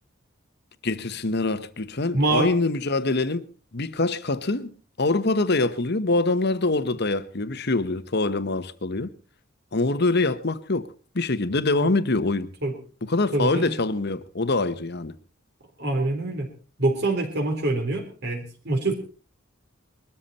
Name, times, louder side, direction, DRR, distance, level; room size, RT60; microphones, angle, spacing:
voice 1, 0.8-3.4 3.7-9.1 9.7-10.9 11.1-12.5 13.0-15.1, left 2 dB, 55° left, 1.2 m, -24 dB
voice 2, 2.1-2.5 12.6-12.7 13.3-13.7 15.8-16.5 16.8-18.9, right 2 dB, 55° right, 3.8 m, -25 dB
22.0 x 13.0 x 4.2 m
head